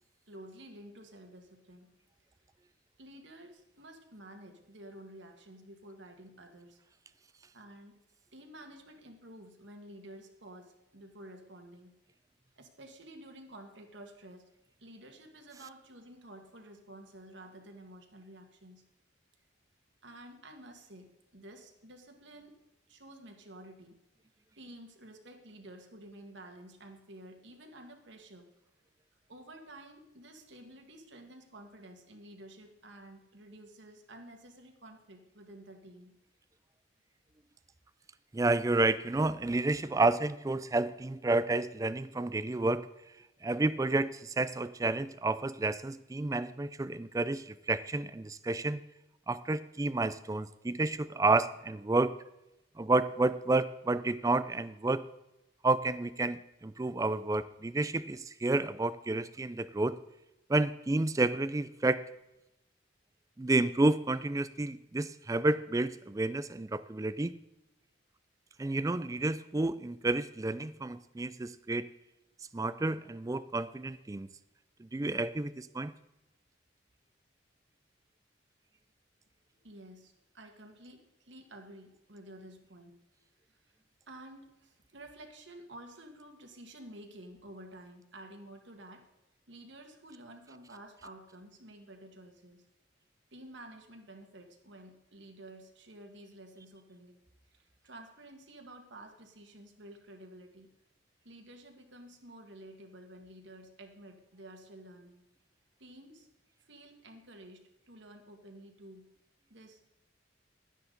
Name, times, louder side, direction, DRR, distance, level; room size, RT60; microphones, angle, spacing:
voice 1, 0.3-1.9 3.0-6.8 7.5-8.0 8.3-12.0 12.6-14.5 14.8-18.9 20.0-22.6 22.9-24.0 24.6-28.5 29.3-36.2 79.6-83.0 83.5-83.6 84.1-89.1 89.5-92.7 93.3-97.2 97.5-100.7 101.2-105.2 105.8-106.3 106.6-109.1 109.5-109.9, right 1 dB, 70° right, 3 dB, 1.8 m, -51 dB
voice 2, 38.3-42.9 43.4-48.8 49.3-52.1 52.8-55.0 55.6-60.0 60.5-62.0 63.4-67.3 68.6-71.9 72.5-74.3 74.8-75.9, right 2 dB, 15° right, 15 dB, 0.3 m, -30 dB
12.0 x 10.0 x 4.0 m, 0.91 s
head